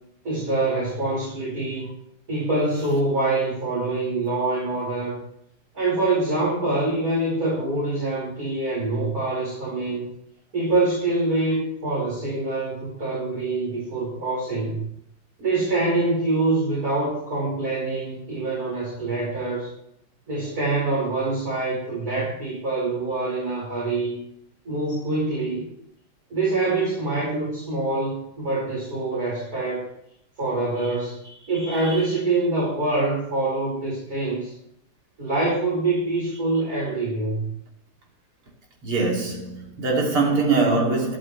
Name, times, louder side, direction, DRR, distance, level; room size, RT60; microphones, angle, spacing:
voice 1, 0.2-1.9 2.3-5.2 5.7-10.1 10.5-14.8 15.4-19.7 20.3-24.2 24.7-25.7 26.3-29.9 30.4-31.2 31.5-34.5 35.2-37.5, right 2 dB, 40° right, 5.4 m, -25 dB
voice 2, 31.6-32.0 38.8-41.2, right 3 dB, 85° right, 3.6 m, -23 dB
13.0 x 11.5 x 3.2 m
omnidirectional pair, 2.3 m